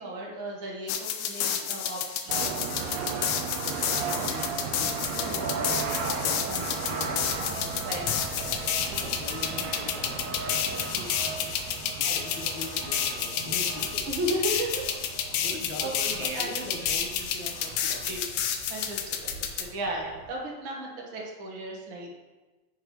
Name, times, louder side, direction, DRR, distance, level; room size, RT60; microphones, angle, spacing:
voice 1, 0.0-2.9 4.2-4.3 5.3-5.5 6.5-7.0 7.3-9.1 9.5-9.6 10.9-11.5 12.0-12.5 14.0-14.9 15.8-16.6 18.0-18.4 18.7-22.1, right 1 dB, 50° right, -2 dB, 1.7 m, -36 dB
sound 1, 0.9-19.6, left 8 dB, 90° left, 1.4 m, -30 dB
sound 2, 2.3-20.3, right 5 dB, 80° right, 1.5 m, -36 dB
voice 2, 3.7-7.7 9.0-10.4 12.0-14.1 15.3-18.3, left 2 dB, 70° left, 2 dB, 2.1 m, -42 dB
9.4 x 6.7 x 3.0 m, 1.2 s
omnidirectional pair, 3.7 m